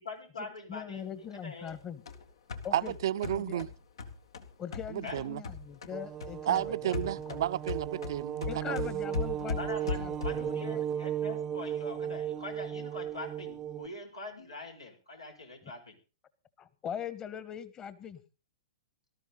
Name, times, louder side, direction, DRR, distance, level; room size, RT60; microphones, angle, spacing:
voice 1, 0.0-1.1 1.4-1.7 5.0-5.2 9.6-16.0, left 3 dB, 85° left, 5.5 m, -43 dB
voice 2, 0.7-2.0 2.6-2.9 3.2-3.6 4.6-7.4 8.5-10.8 16.6-18.2, left 8 dB, 25° left, 1.6 m, -41 dB
sound 1, 1.7-6.0 6.2-10.6, left 5 dB, 65° left, 1.9 m, -39 dB
voice 3, 2.7-3.7 4.9-5.4 6.5-8.8, right 12 dB, 55° right, 0.7 m, -32 dB
sound 2, 5.9-13.9, right 10 dB, 20° right, 0.7 m, -36 dB
19.0 x 13.0 x 4.1 m
figure-of-eight pair, 110°, 3 cm